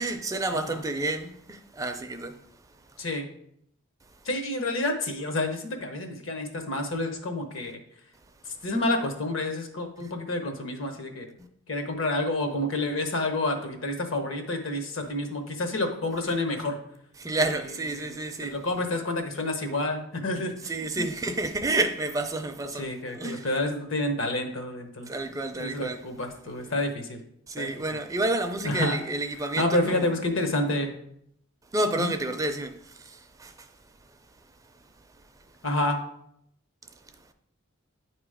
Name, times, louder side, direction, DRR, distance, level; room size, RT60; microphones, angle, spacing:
voice 1, 0.0-2.4 10.0-10.1 11.4-11.5 15.0-15.1 17.2-18.6 20.6-23.5 25.1-26.0 27.5-30.1 31.7-33.7, right 2 dB, 15° right, 0.4 m, -30 dB
voice 2, 4.2-7.8 8.6-11.3 11.7-16.8 17.9-18.1 18.4-20.7 21.0-21.1 22.8-25.1 25.6-27.2 27.6-27.7 28.6-29.0 29.6-30.9 32.0-32.1 35.6-36.0, left 2 dB, 70° left, 1.0 m, -29 dB
9.0 x 3.0 x 4.9 m
head